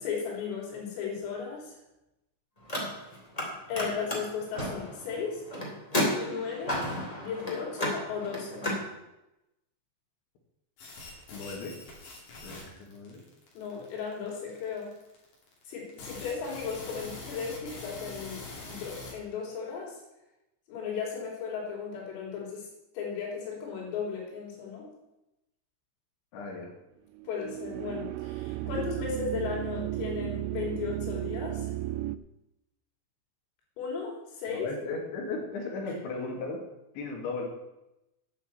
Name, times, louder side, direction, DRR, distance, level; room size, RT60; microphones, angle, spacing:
voice 1, 0.0-1.8 3.7-5.4 6.1-6.8 7.2-8.7 13.6-14.9 15.7-20.0 20.7-22.7 22.9-24.9 27.3-31.7 33.8-34.7, left 6 dB, 85° left, -2 dB, 5.8 m, -35 dB
Car, 2.6-3.5 3.7-8.8, left 1 dB, 20° left, 1.1 m, -32 dB
sound 1, 10.8-19.1, left 2 dB, 50° left, 4.2 m, -44 dB
voice 2, 11.3-11.8 12.4-13.2 26.3-26.7 28.6-28.7 34.5-36.6 36.9-37.5, left 3 dB, 65° left, 0 dB, 4.4 m, -36 dB
sound 2, 27.1-32.2, right 14 dB, 85° right, 2.8 m, -34 dB
10.0 x 7.1 x 8.2 m, 0.92 s
omnidirectional pair, 5.8 m